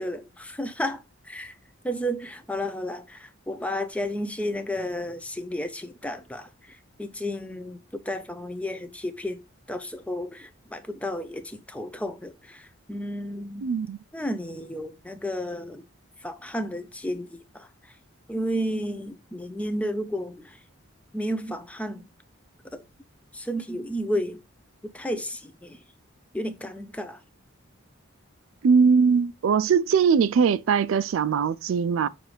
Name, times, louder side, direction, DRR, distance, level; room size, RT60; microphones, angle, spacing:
voice 1, 0.0-1.6 1.8-9.4 9.7-13.6 14.1-15.9 16.2-17.7 18.3-20.6 21.1-22.1 22.7-22.8 23.3-24.4 24.8-25.8 26.3-27.2, equal, 5° left, 0.4 m, -32 dB
voice 2, 13.6-14.0 28.6-32.1, right 6 dB, 70° right, 0.3 m, -21 dB
6.4 x 2.5 x 3.0 m
head